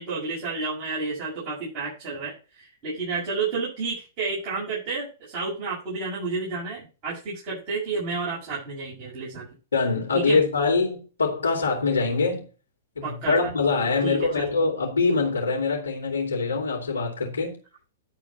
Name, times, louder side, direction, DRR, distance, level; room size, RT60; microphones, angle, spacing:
voice 1, 0.0-9.5 10.1-10.4 13.0-13.5 14.0-14.4, right 4 dB, 35° right, 7.1 m, -31 dB
voice 2, 9.7-12.4 13.0-17.5, left 4 dB, 75° left, 2.8 m, -24 dB
11.0 x 4.5 x 7.2 m
figure-of-eight pair, 105°, 0 cm